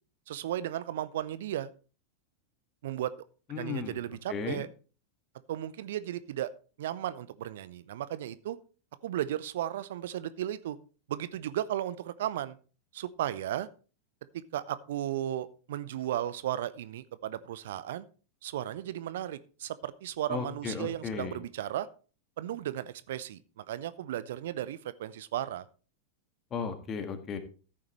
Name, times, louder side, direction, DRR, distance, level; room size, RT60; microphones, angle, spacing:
voice 1, 0.3-1.7 2.8-3.1 3.5-4.7 5.5-6.5 6.8-8.6 9.0-10.8 11.1-12.6 12.9-13.7 14.3-18.0 18.4-21.9 22.4-25.6, right 12 dB, 55° right, 16 dB, 0.6 m, -35 dB
voice 2, 3.5-4.0 4.3-4.6 20.3-21.4 26.5-27.4, left 6 dB, 25° left, 8 dB, 1.7 m, -35 dB
14.0 x 8.6 x 3.1 m, 0.36 s
figure-of-eight pair, 90°, 0 cm